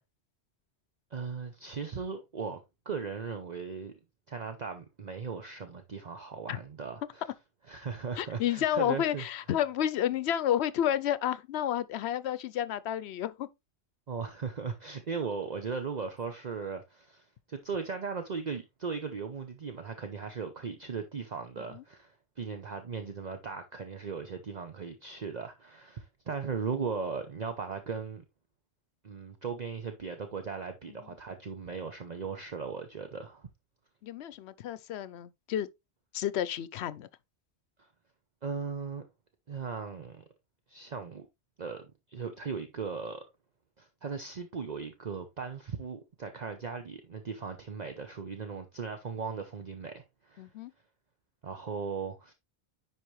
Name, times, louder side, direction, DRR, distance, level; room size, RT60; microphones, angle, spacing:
voice 1, 1.1-2.6 2.9-3.9 4.3-7.2 7.7-9.2 14.1-28.2 29.0-33.5 37.8-37.9 38.4-39.0 39.5-40.2 40.7-41.3 41.6-43.2 43.8-50.5 51.4-52.3, right 5 dB, 45° right, 0.9 m, -38 dB
voice 2, 8.2-13.5 21.7-21.8 34.0-35.7 36.1-37.1 50.4-50.7, left 10 dB, 75° left, 0.9 m, -31 dB
10.0 x 4.6 x 3.1 m
omnidirectional pair, 1.1 m